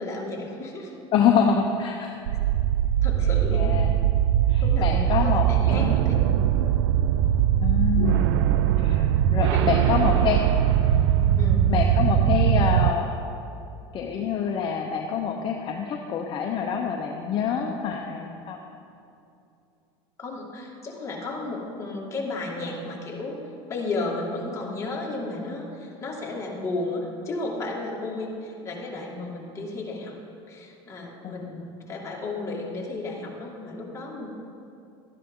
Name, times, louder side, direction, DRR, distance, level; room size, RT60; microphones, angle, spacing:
voice 1, 0.0-0.9 3.0-3.8 4.6-6.2 9.5-10.3 11.4-11.7 17.5-17.7 20.2-23.4 23.7-30.2 30.5-34.3, left 2 dB, 20° left, -3 dB, 2.2 m, -33 dB
voice 2, 1.1-2.1 3.2-4.0 4.5-6.0 7.6-8.4 8.8-10.4 11.7-13.1 13.9-18.6 31.2-31.7, left 7 dB, 40° left, 2 dB, 0.8 m, -26 dB
sound 1, 2.3-12.9, right 11 dB, 85° right, 0.4 m, -21 dB
13.0 x 10.0 x 3.8 m, 2.6 s
supercardioid pair, 115°, 13 cm